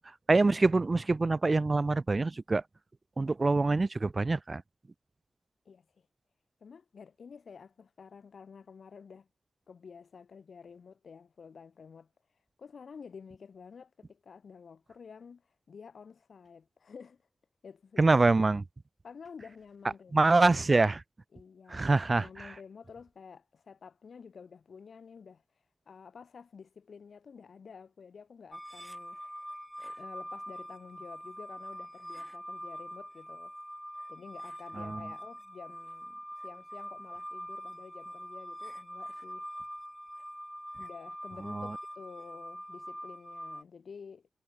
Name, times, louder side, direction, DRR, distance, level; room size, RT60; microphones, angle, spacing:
voice 1, 0.3-2.6 3.2-4.6 18.0-18.6 20.1-21.0 21.7-22.5 34.8-35.0 41.5-41.8, right 3 dB, 35° right, 0.4 m, -25 dB
voice 2, 5.6-6.1 6.6-9.3 9.7-12.1 12.6-15.4 15.7-17.2 17.6-18.2 19.0-20.4 21.3-25.4 25.8-29.4 29.8-33.6 34.1-39.5 40.8-44.3, left 6 dB, 75° left, 1.7 m, -50 dB
sound 1, 28.5-43.6, equal, ahead, 1.2 m, -44 dB
wide cardioid pair, 90°, 0 cm